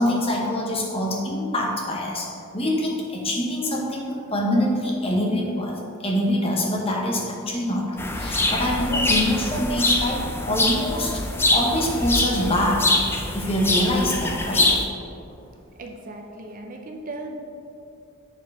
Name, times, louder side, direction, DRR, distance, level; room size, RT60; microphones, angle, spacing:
voice 1, 0.0-2.3 2.5-5.7 6.0-12.9 13.3-14.7, left 1 dB, 25° left, -2 dB, 1.0 m, -25 dB
sound 1, 8.0-14.8, left 2 dB, 10° left, 0.4 m, -24 dB
voice 2, 15.7-17.4, right 2 dB, 40° right, 2 dB, 0.5 m, -37 dB
7.2 x 4.4 x 4.7 m, 2.5 s
head